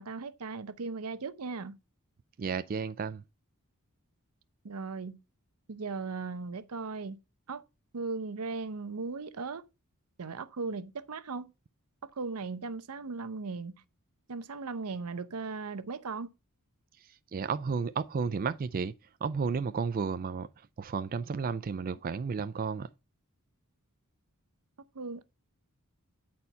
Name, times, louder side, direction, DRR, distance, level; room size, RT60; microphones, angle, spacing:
voice 1, 0.0-1.8 4.6-5.2 5.7-7.2 7.5-7.6 7.9-9.6 10.2-11.5 12.0-13.8 14.3-16.3 24.9-25.2, right 4 dB, 90° right, 0.7 m, -37 dB
voice 2, 2.4-3.2 17.0-18.9 19.2-20.5 20.8-22.9, right 5 dB, 40° right, 0.4 m, -32 dB
9.4 x 4.4 x 5.4 m
head